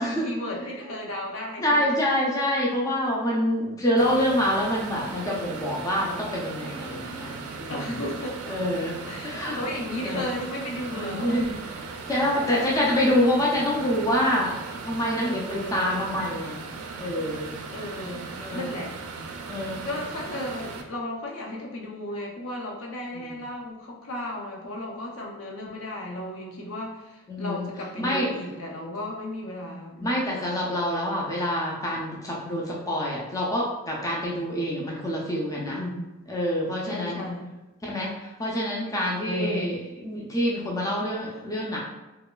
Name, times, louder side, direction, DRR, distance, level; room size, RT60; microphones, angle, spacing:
voice 1, 0.0-2.0 7.7-8.6 9.0-11.6 12.2-12.3 13.2-13.4 15.5-16.0 17.7-19.0 19.8-30.2 35.7-36.1 36.8-37.5 39.2-39.8, left 1 dB, 70° left, -1 dB, 0.6 m, -34 dB
voice 2, 1.6-7.8 8.5-9.0 9.2-9.6 10.0-10.3 10.9-11.5 12.1-14.5 14.8-16.6 17.0-17.5 18.4-18.7 19.5-19.9 23.1-23.3 27.3-27.7 28.0-28.3 30.0-35.8 36.3-37.2 37.8-41.8, equal, 15° left, -4 dB, 0.4 m, -26 dB
sound 1, 4.0-20.8, right 4 dB, 90° right, 0.3 m, -38 dB
2.9 x 2.2 x 2.3 m, 1.1 s
head